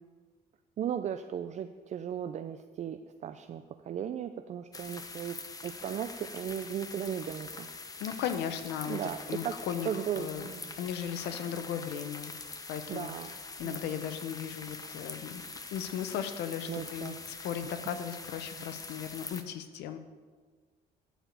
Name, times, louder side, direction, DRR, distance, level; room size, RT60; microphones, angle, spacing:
voice 1, 0.8-7.7 8.9-9.6 9.8-10.7 12.9-13.3 13.6-13.9 16.7-17.1, right 9 dB, 45° right, 9 dB, 0.5 m, -36 dB
sound 1, 4.7-19.4, left 3 dB, 20° left, 0.9 m, -44 dB
voice 2, 8.0-9.0 9.3-10.5 10.8-12.3 12.7-13.1 13.6-15.4 15.7-20.0, left 9 dB, 80° left, 9 dB, 0.9 m, -36 dB
12.5 x 4.8 x 8.2 m, 1.5 s
cardioid pair, 110°, 17 cm